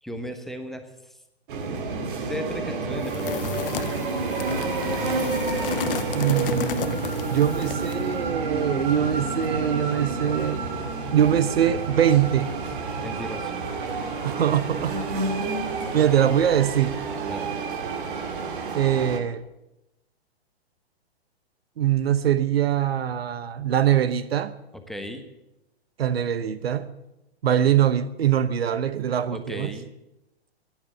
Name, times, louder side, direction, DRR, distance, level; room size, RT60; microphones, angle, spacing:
voice 1, 0.0-1.1 2.2-3.5 13.0-13.5 17.2-17.5 24.9-25.3 29.3-29.9, equal, ahead, 1.2 m, -35 dB
sound 1, 1.5-19.2, right 3 dB, 50° right, 2.0 m, -29 dB
sound 2, 3.0-8.1, left 11 dB, 60° left, 0.6 m, -33 dB
voice 2, 6.1-10.6 11.1-12.5 14.2-15.0 15.9-17.0 18.7-19.4 21.8-24.5 26.0-26.9 27.4-29.7, right 10 dB, 70° right, 1.0 m, -23 dB
14.5 x 10.5 x 8.4 m
hypercardioid pair, 125°, 32 cm